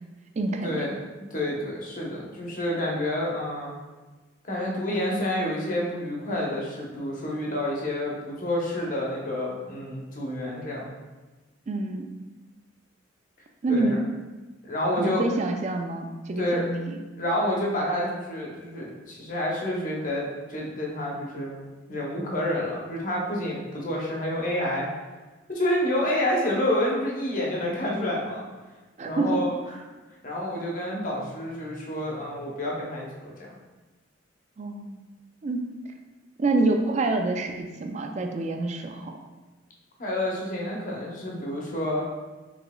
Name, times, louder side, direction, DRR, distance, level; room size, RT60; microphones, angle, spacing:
voice 1, 0.4-0.9 11.7-12.1 13.6-14.1 15.0-17.0 29.0-29.4 34.6-35.0 35.4-35.7 36.4-39.1, right 2 dB, 35° right, 4 dB, 0.3 m, -27 dB
voice 2, 1.3-3.7 4.4-10.9 13.7-14.0 14.6-15.4 16.4-16.6 17.2-24.9 25.5-28.4 29.0-29.8 30.2-33.3 40.0-42.1, left 1 dB, 40° left, -3 dB, 0.8 m, -29 dB
4.9 x 3.8 x 2.3 m, 1.2 s
head